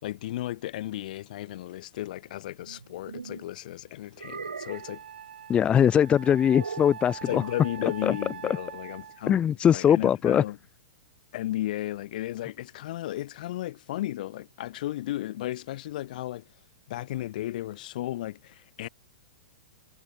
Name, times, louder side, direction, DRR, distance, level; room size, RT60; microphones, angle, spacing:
voice 1, 0.0-5.0 7.3-10.6 11.3-16.4 16.9-18.9, left 14 dB, 60° left, 2.1 m, -34 dB
sound 1, 2.6-3.4 4.2-5.0 6.5-7.0, right 5 dB, 90° right, 1.8 m, -39 dB
Wind instrument woodwind instrument, 4.0-4.1 4.7-9.3, right 9 dB, 75° right, 1.6 m, -43 dB
voice 2, 5.5-7.4 8.0-8.2 9.3-10.4, left 9 dB, 20° left, 0.6 m, -21 dB
hypercardioid pair, 115°, 5 cm